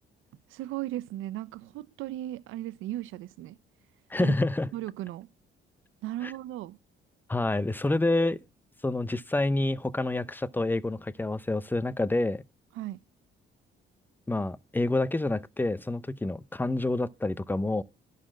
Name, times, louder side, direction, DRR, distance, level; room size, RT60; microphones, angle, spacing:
voice 1, 0.5-3.6 4.2-4.3 4.7-5.3 6.0-6.8 12.8-13.0, right 14 dB, 90° right, 0.6 m, -36 dB
voice 2, 4.1-4.7 6.2-6.3 7.3-8.4 8.8-12.4 14.3-17.8, left 2 dB, 10° left, 0.7 m, -28 dB
11.5 x 4.1 x 7.5 m
cardioid pair, 90°, 20 cm